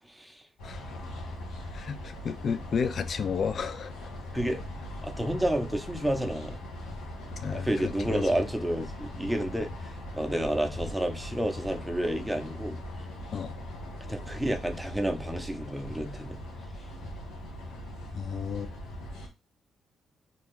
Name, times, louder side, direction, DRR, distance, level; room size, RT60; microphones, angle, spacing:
voice 1, 0.1-0.4 4.3-4.6 5.0-6.6 7.5-12.8 14.0-16.4, right 1 dB, 5° right, 0.6 m, -30 dB
sound 1, 0.6-19.3, left 1 dB, 90° left, 0.8 m, -40 dB
voice 2, 1.7-3.9 7.4-8.4 13.3-13.6 18.1-18.7, left 6 dB, 55° left, 0.3 m, -32 dB
2.6 x 2.3 x 3.5 m
cardioid pair, 75°, 0 cm